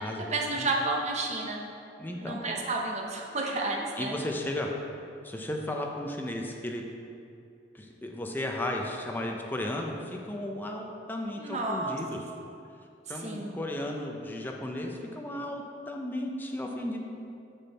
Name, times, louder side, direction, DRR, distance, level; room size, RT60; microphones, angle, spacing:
voice 1, 0.3-1.6 2.2-4.2 11.4-12.0 13.2-13.6, right 2 dB, 40° right, 0 dB, 0.9 m, -31 dB
voice 2, 2.0-2.4 4.0-4.7 5.2-6.8 7.7-12.2 13.1-17.0, left 1 dB, 10° left, 1 dB, 0.6 m, -34 dB
6.7 x 6.0 x 4.2 m, 2.6 s
head